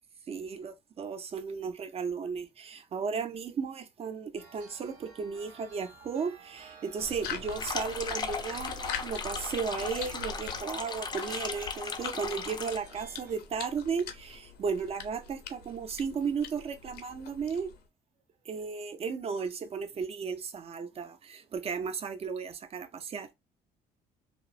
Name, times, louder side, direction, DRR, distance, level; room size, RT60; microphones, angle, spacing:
voice 1, 0.3-17.7 18.5-23.3, right 5 dB, 35° right, 0.5 m, -35 dB
sound 1, 4.4-13.3, right 5 dB, 85° right, 0.7 m, -51 dB
sound 2, 7.0-17.9, left 6 dB, 70° left, 0.6 m, -43 dB
sound 3, 7.5-12.8, left 5 dB, 25° left, 0.4 m, -37 dB
2.9 x 2.0 x 2.2 m
cardioid pair, 110°, 17 cm